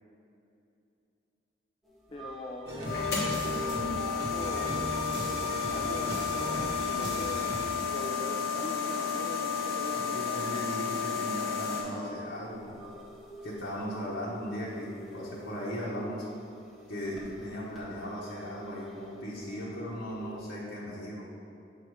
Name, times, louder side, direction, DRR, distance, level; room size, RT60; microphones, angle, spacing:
sound 1, 1.8-20.4, equal, ahead, 0.8 m, -48 dB
voice 1, 2.1-3.2 4.1-5.2 5.6-10.5, left 1 dB, 30° left, 0 dB, 0.3 m, -42 dB
sound 2, 2.7-7.7, right 1 dB, 70° right, 1.0 m, -37 dB
sound 3, 2.8-11.8, left 6 dB, 60° left, 1.5 m, -32 dB
voice 2, 10.1-13.0 13.4-16.2 16.9-21.3, equal, 85° left, -7 dB, 1.1 m, -37 dB
6.9 x 4.0 x 4.8 m, 2.6 s
head